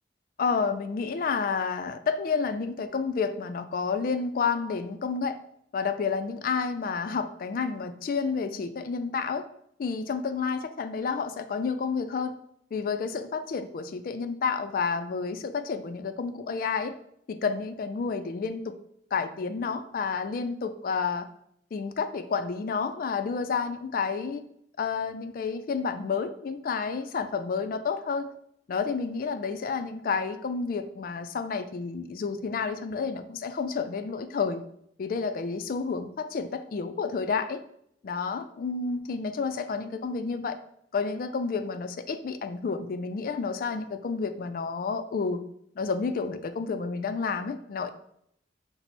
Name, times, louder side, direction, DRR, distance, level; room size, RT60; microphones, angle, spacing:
voice 1, 0.4-5.4 5.7-9.5 9.8-12.4 12.7-17.0 17.3-18.8 19.1-21.3 21.7-24.4 24.8-28.3 28.7-34.6 35.0-37.6 38.0-40.6 40.9-45.4 45.8-47.9, left 5 dB, 50° left, 10 dB, 0.3 m, -30 dB
5.9 x 2.0 x 4.0 m, 0.71 s
head